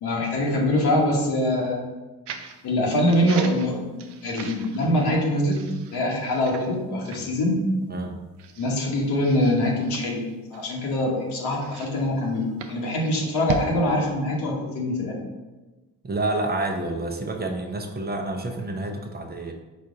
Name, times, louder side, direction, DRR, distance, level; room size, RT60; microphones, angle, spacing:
voice 1, 0.0-1.8 2.6-4.0 4.2-5.6 5.9-7.6 8.6-10.3 10.5-15.2, left 1 dB, 70° left, -2 dB, 1.1 m, -24 dB
sound 1, 2.3-2.6 3.1-5.1 5.5-6.8 7.0-7.2 7.8-7.9 8.4-8.8 9.2-10.9 11.5-13.7, right 5 dB, 80° right, 0.6 m, -38 dB
voice 2, 16.0-19.5, right 2 dB, 25° right, 3 dB, 0.7 m, -29 dB
4.2 x 2.6 x 4.9 m, 1.2 s
supercardioid pair, 60°, 40 cm